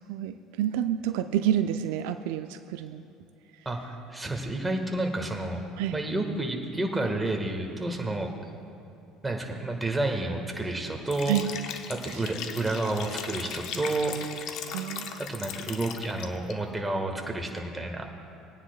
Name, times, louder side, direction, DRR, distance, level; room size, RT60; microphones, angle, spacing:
voice 1, 0.0-3.0 5.8-6.0 11.3-11.5 12.1-12.3 14.7-15.2, right 11 dB, 75° right, 9 dB, 0.3 m, -29 dB
voice 2, 3.6-5.6 5.9-8.3 9.2-11.3 11.9-14.2 15.2-18.1, right 2 dB, 15° right, 2 dB, 1.6 m, -30 dB
Liquid, 11.0-16.5, left 8 dB, 60° left, 0.7 m, -38 dB
21.5 x 9.8 x 2.3 m, 2.6 s
hypercardioid pair, 70°, 0 cm